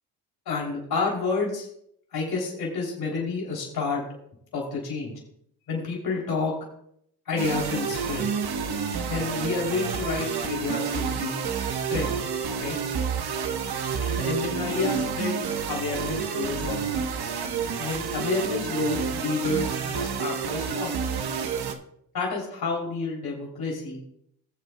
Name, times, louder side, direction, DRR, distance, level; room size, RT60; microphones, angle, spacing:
voice 1, 0.4-1.7 2.1-4.0 4.5-5.1 5.7-6.5 7.2-8.3 9.1-11.4 11.7-12.1 12.6-12.8 14.0-15.4 15.7-17.3 17.8-20.9 22.1-24.0, left 4 dB, 60° left, -2 dB, 3.2 m, -30 dB
sound 1, 7.4-21.7, right 6 dB, 60° right, 1.1 m, -29 dB
19.5 x 7.6 x 2.2 m, 0.72 s
cardioid pair, 75°, 43 cm